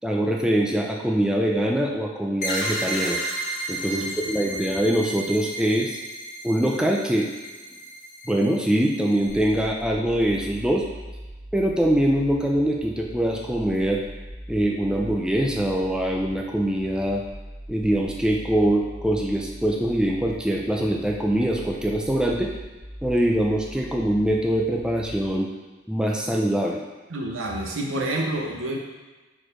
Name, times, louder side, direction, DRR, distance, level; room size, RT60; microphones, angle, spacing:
voice 1, 0.0-3.2 3.7-6.0 6.4-7.3 8.3-10.8 11.5-14.0 14.5-17.2 17.7-22.5 23.0-25.5 25.9-26.8, right 1 dB, 5° right, 0 dB, 0.4 m, -23 dB
sound 1, 2.4-9.6, right 1 dB, 40° left, 1.6 m, -33 dB
sound 2, 9.8-25.3, equal, 15° left, 1.1 m, -41 dB
voice 2, 27.1-28.8, right 1 dB, 75° right, 0 dB, 0.7 m, -28 dB
4.7 x 4.3 x 5.0 m, 1.2 s
head